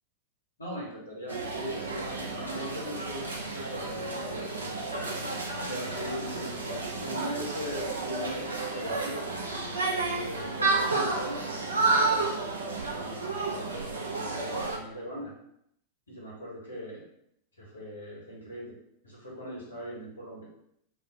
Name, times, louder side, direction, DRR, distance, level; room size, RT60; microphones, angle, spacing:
voice 1, 0.6-5.1 5.7-9.4 10.1-12.5 12.8-15.3 16.1-17.0 17.6-18.8 19.0-20.5, equal, 75° left, -4 dB, 0.9 m, -40 dB
sound 1, 1.3-14.8, right 3 dB, 75° right, 0.4 m, -31 dB
2.4 x 2.0 x 3.7 m, 0.75 s
figure-of-eight pair, 90°, 0 cm